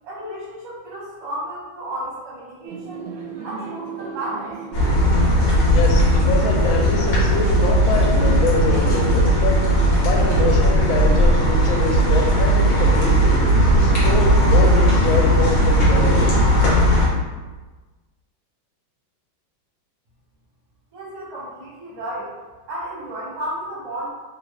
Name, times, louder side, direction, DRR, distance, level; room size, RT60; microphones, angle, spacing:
voice 1, 0.0-3.1 3.4-4.5 20.9-22.3 22.7-24.1, right 1 dB, 65° right, -8 dB, 1.5 m, -32 dB
sound 1, 2.7-11.3, right 6 dB, 85° right, 1.3 m, -35 dB
sound 2, 4.7-17.1, equal, 55° left, 1.1 m, -17 dB
voice 2, 5.7-9.6 10.0-13.4 13.7-16.3, left 4 dB, 80° left, 0 dB, 1.3 m, -25 dB
3.3 x 2.4 x 3.2 m, 1.3 s
omnidirectional pair, 2.2 m